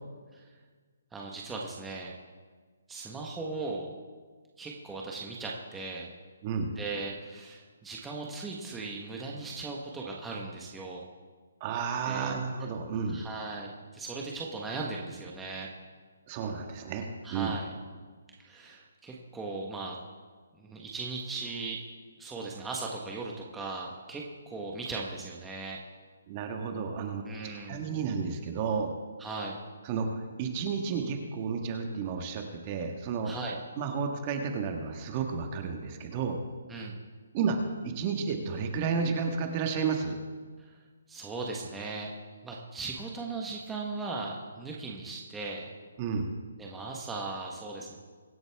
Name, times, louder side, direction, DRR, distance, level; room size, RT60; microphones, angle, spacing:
voice 1, 1.1-2.1 2.9-3.9 4.6-6.1 6.7-11.0 12.0-12.3 13.1-15.7 17.2-17.7 18.4-20.0 20.6-21.8 22.2-25.8 27.3-27.8 29.2-29.6 33.2-33.6 36.7-37.0 40.6-40.7 41.1-42.1 42.4-45.7 46.6-48.0, right 3 dB, 10° right, -2 dB, 1.3 m, -38 dB
voice 2, 11.6-13.2 16.3-17.5 26.3-28.9 29.8-33.3 33.8-36.4 37.3-37.6 37.8-40.2 46.0-46.3, right 5 dB, 30° right, 4 dB, 1.5 m, -32 dB
24.0 x 8.0 x 3.6 m, 1.5 s
hypercardioid pair, 160°, 0 cm